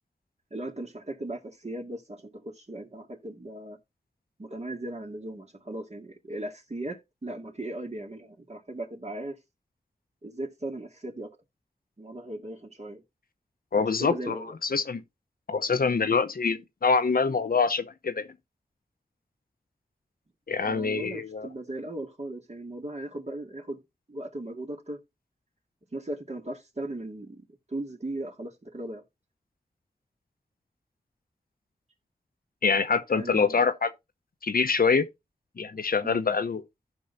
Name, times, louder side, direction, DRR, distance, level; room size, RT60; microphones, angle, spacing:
voice 1, 0.5-3.8 4.4-9.4 10.2-11.4 12.0-13.0 13.7-14.5 20.6-23.8 24.1-25.0 25.9-27.4 27.7-29.0 33.1-33.7 36.0-36.2, right 1 dB, 45° right, 2.1 m, -37 dB
voice 2, 13.7-14.4 14.7-15.0 15.5-18.3 20.5-21.5 32.6-33.9 34.4-35.1 35.6-36.6, left 5 dB, 65° left, 0.8 m, -25 dB
15.0 x 5.4 x 2.6 m
cardioid pair, 50°, 16 cm